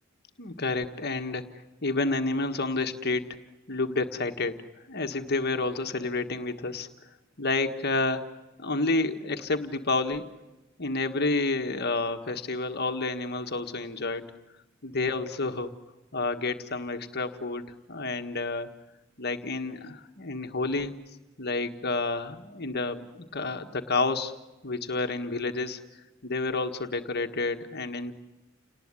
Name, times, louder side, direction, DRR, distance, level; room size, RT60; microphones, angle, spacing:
voice 1, 0.4-1.5 1.8-3.3 3.7-4.6 4.9-6.9 7.4-10.2 10.8-14.2 14.8-15.7 16.1-18.7 19.2-21.0 21.4-24.3 24.6-25.8 26.2-28.1, left 3 dB, 50° left, 6 dB, 1.6 m, -29 dB
29.5 x 19.5 x 9.8 m, 1.0 s
head